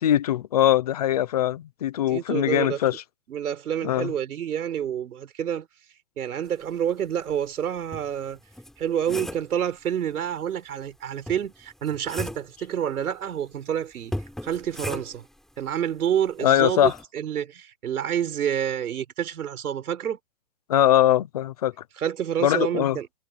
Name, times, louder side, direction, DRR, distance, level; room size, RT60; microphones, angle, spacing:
voice 1, 0.0-3.0 3.8-4.1 16.4-16.9 20.7-21.7 22.4-23.0, left 11 dB, 25° left, 0.6 m, -21 dB
voice 2, 2.1-2.8 3.3-5.7 6.2-8.4 8.8-14.1 14.4-15.3 15.6-20.2 22.0-23.1, right 9 dB, 85° right, 6.1 m, -28 dB
sound 1, 7.3-7.4 7.9-9.6 11.3-12.6 14.1-15.3 16.8-17.0, left 1 dB, ahead, 5.9 m, -36 dB
hypercardioid pair, 180°, 43 cm